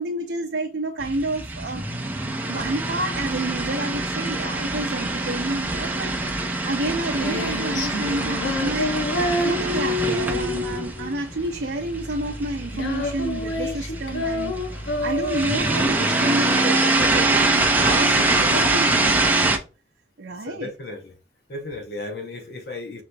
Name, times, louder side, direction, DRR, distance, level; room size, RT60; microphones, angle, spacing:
voice 1, 0.0-1.9 2.4-8.9 9.4-14.6 15.0-19.6 20.2-20.7, right 2 dB, 70° right, 0.5 m, -29 dB
sound 1, 1.0-19.6, right 2 dB, 10° right, 0.4 m, -24 dB
Female singing, 6.7-17.6, left 2 dB, 85° left, 0.9 m, -28 dB
voice 2, 18.5-19.0 20.4-21.2 21.5-23.0, left 2 dB, 55° left, 0.7 m, -35 dB
5.6 x 3.0 x 2.6 m
head